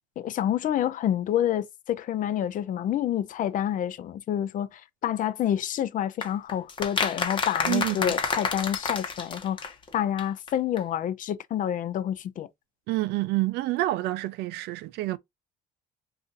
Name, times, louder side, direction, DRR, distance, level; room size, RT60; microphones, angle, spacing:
voice 1, 0.2-9.6 9.9-12.5, left 10 dB, 50° left, 0.4 m, -28 dB
sound 1, 6.2-9.9 10.2-10.3 10.5-10.6 10.8-10.9, left 4 dB, 30° left, 0.9 m, -29 dB
voice 2, 7.7-8.1 12.9-15.2, right 18 dB, 85° right, 0.4 m, -28 dB
2.5 x 2.5 x 3.8 m
cardioid pair, 110°, 17 cm